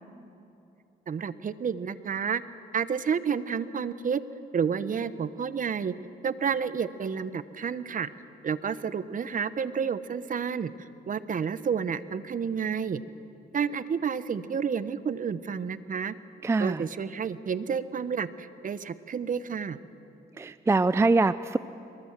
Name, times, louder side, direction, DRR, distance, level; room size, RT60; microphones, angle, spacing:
voice 1, 1.1-2.4 2.7-4.2 4.5-5.9 6.2-8.1 8.4-10.7 11.1-13.0 13.5-16.1 16.6-19.8, right 6 dB, 40° right, 14 dB, 0.9 m, -30 dB
voice 2, 16.4-16.8 20.4-21.6, right 3 dB, 15° right, 15 dB, 0.4 m, -23 dB
23.5 x 21.0 x 7.4 m, 2.8 s
cardioid pair, 90°, 20 cm